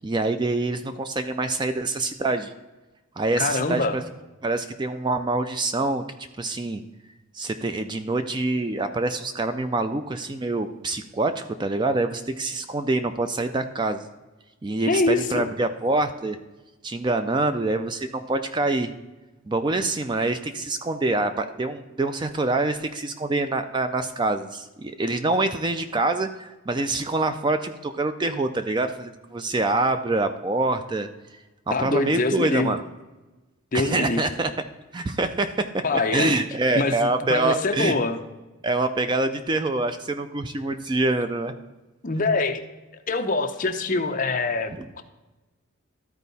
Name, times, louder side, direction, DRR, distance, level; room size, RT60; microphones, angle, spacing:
voice 1, 0.0-2.5 3.2-4.0 4.4-6.0 6.4-6.8 7.3-14.1 14.6-16.4 16.8-18.9 19.5-31.1 31.8-32.8 33.7-34.5 34.9-38.0 38.6-41.5 44.7-44.8, right 2 dB, 20° right, 9 dB, 0.3 m, -25 dB
voice 2, 3.4-3.9 14.9-15.5 31.7-32.8 33.7-34.2 35.8-36.3 36.8-38.2 42.0-42.6 43.1-45.0, left 3 dB, 40° left, 6 dB, 0.6 m, -24 dB
13.0 x 4.5 x 4.1 m, 1.1 s
head